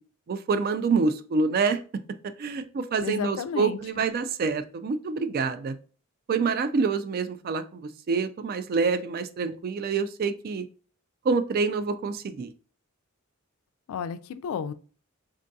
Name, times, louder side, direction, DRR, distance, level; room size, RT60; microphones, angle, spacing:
voice 1, 0.3-1.8 2.4-5.8 6.3-10.6 11.2-12.5, right 4 dB, 45° right, 11 dB, 0.3 m, -27 dB
voice 2, 3.0-3.8 13.9-14.7, left 7 dB, 80° left, 13 dB, 0.3 m, -32 dB
3.6 x 2.6 x 2.2 m, 0.39 s
head